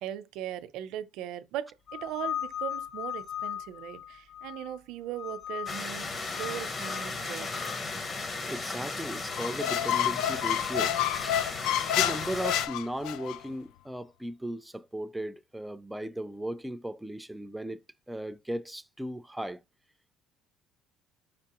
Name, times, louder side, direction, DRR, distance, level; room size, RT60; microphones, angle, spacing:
voice 1, 0.0-7.5, right 11 dB, 75° right, 0.6 m, -39 dB
sound 1, 1.9-4.8 5.1-5.9 6.3-7.8, left 10 dB, 50° left, 1.7 m, -38 dB
sound 2, 5.7-12.7, left 3 dB, 30° left, 0.8 m, -36 dB
voice 2, 8.5-11.0 11.9-17.8 18.1-19.6, right 1 dB, 5° right, 0.4 m, -36 dB
Squeak, 9.3-13.4, left 12 dB, 75° left, 0.3 m, -29 dB
5.3 x 3.4 x 2.9 m
cardioid pair, 140°, 0 cm